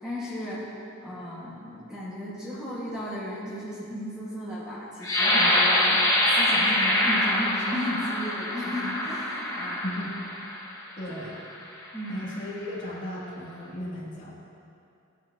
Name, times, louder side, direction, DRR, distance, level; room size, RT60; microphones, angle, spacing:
voice 1, 0.0-9.8 11.9-12.3, left 1 dB, 5° right, -9 dB, 1.8 m, -35 dB
sound 1, 5.0-10.7 11.3-11.5 12.0-12.4, left 1 dB, 15° left, 1.5 m, -25 dB
voice 2, 9.8-10.2 11.0-11.4 12.1-14.3, left 1 dB, 40° left, -8 dB, 2.8 m, -35 dB
17.5 x 10.0 x 3.0 m, 2.6 s
head